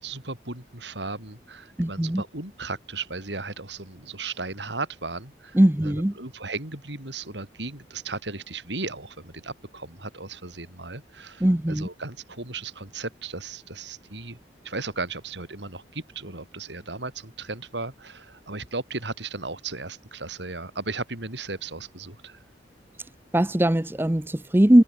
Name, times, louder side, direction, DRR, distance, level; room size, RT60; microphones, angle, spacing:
voice 1, 0.0-14.4 14.6-22.4, right 3 dB, 80° right, 5.3 m, -36 dB
voice 2, 1.8-2.2 5.5-6.1 11.4-11.9 23.3-24.8, right 1 dB, 10° right, 0.7 m, -20 dB
head